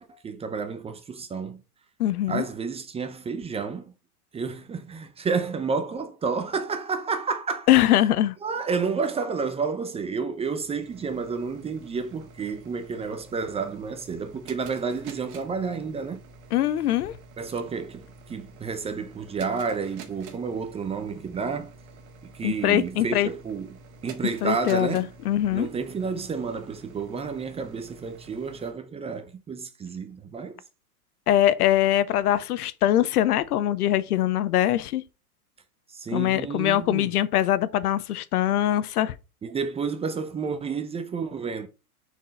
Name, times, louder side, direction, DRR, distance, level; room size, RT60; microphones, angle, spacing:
voice 1, 0.0-1.6 2.3-3.9 4.3-7.7 8.4-16.2 17.4-21.7 22.3-23.8 24.0-25.0 25.5-30.5 35.9-37.1 39.4-41.7, right 5 dB, 15° right, 0.6 m, -30 dB
voice 2, 2.0-2.4 7.7-8.4 16.5-17.1 22.4-23.3 24.4-25.7 31.3-35.0 36.1-39.1, left 12 dB, 75° left, 0.8 m, -22 dB
sound 1, 10.2-28.7, right 4 dB, 40° right, 1.7 m, -48 dB
6.1 x 4.5 x 4.1 m
hypercardioid pair, 120°, 45 cm